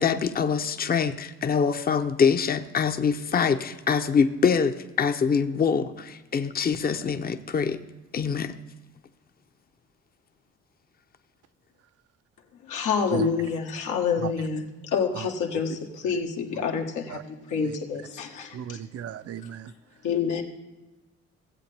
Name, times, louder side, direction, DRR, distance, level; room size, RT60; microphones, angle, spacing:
voice 1, 0.0-7.8 8.1-8.6, left 6 dB, 30° left, 0.7 m, -24 dB
voice 2, 12.6-18.8 19.4-19.5 20.0-20.4, left 6 dB, 85° left, 1.4 m, -28 dB
voice 3, 18.5-19.7, right 8 dB, 55° right, 0.5 m, -34 dB
17.0 x 7.8 x 3.4 m
cardioid pair, 90°, 30 cm